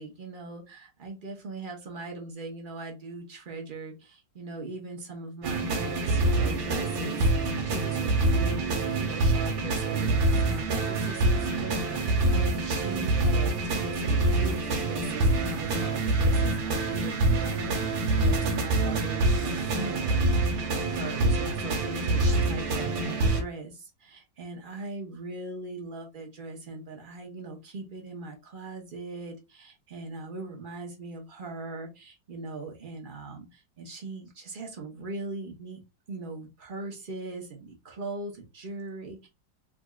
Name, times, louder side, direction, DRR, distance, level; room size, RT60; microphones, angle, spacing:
voice 1, 0.0-35.8 36.1-39.3, right 3 dB, 45° right, 1 dB, 0.7 m, -40 dB
sound 1, 5.4-23.4, right 2 dB, 85° right, 1.8 m, -26 dB
3.7 x 3.4 x 2.3 m, 0.25 s
omnidirectional pair, 2.1 m